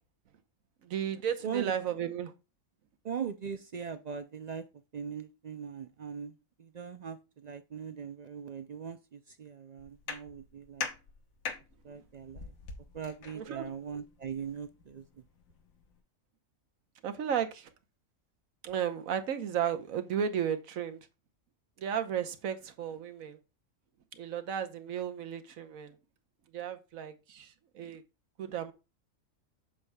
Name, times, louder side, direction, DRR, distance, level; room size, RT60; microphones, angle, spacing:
voice 1, 0.8-2.3 13.3-13.7 17.0-17.7 18.6-21.0 21.8-23.4 24.1-25.9 26.5-28.0 28.4-28.7, right 8 dB, 90° right, 1.3 m, -34 dB
voice 2, 3.0-4.6 4.9-10.9 11.8-12.5 12.9-15.1, right 7 dB, 70° right, 0.4 m, -40 dB
sound 1, 9.8-16.0, left 5 dB, 85° left, 1.5 m, -44 dB
8.1 x 7.0 x 2.3 m
omnidirectional pair, 1.4 m